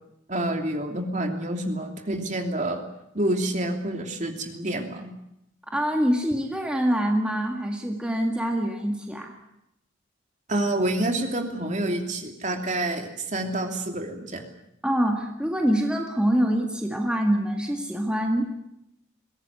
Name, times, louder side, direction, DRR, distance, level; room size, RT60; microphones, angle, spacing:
voice 1, 0.3-2.8 3.1-5.1 10.5-14.4, right 1 dB, 35° right, 4 dB, 2.9 m, -28 dB
voice 2, 5.7-9.3 14.8-18.5, equal, 5° right, 1 dB, 2.0 m, -25 dB
22.5 x 17.0 x 9.7 m, 0.83 s
head